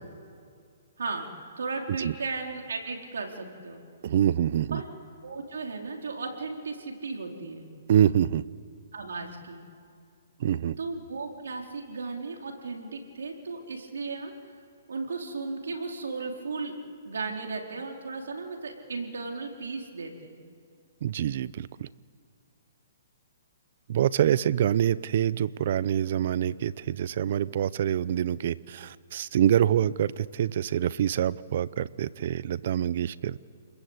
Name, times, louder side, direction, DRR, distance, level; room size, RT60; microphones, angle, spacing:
voice 1, 1.6-3.8 4.7-4.8 5.2-7.7 8.9-9.6 10.8-14.3 14.9-16.7 17.0-20.4, right 4 dB, 85° right, 2 dB, 4.2 m, -35 dB
voice 2, 4.0-4.8 7.9-8.4 10.4-10.8 21.0-21.9 23.9-33.4, right 10 dB, 55° right, 19 dB, 0.7 m, -26 dB
30.0 x 21.0 x 8.2 m, 2.3 s
hypercardioid pair, 150°, 0 cm